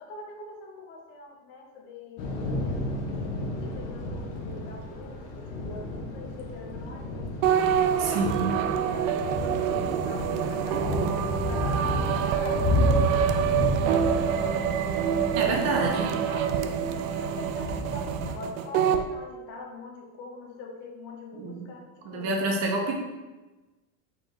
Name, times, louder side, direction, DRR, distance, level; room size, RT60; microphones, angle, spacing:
voice 1, 0.0-3.2 3.6-7.6 8.0-14.9 15.4-16.7 17.1-22.4, left 2 dB, 30° left, 2 dB, 0.6 m, -43 dB
Thunder / Rain, 2.2-18.3, left 1 dB, 60° left, 0.9 m, -32 dB
sound 1, 7.4-19.1, right 8 dB, 75° right, 0.5 m, -26 dB
voice 2, 8.0-8.6 15.3-16.1 21.3-21.7 22.0-23.0, right 2 dB, 45° right, 0 dB, 0.9 m, -28 dB
4.4 x 3.4 x 3.2 m, 1.1 s
supercardioid pair, 165°, 41 cm